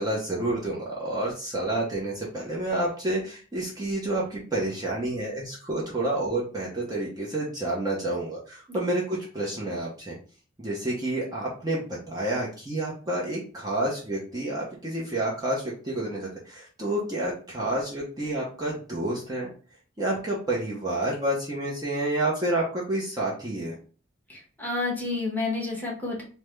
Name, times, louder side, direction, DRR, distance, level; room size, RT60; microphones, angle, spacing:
voice 1, 0.0-10.2 10.6-19.5 20.0-23.7, right 1 dB, 20° right, -5 dB, 0.7 m, -29 dB
voice 2, 24.3-26.2, left 3 dB, 10° left, -4 dB, 0.9 m, -30 dB
3.4 x 2.1 x 3.2 m, 0.39 s
head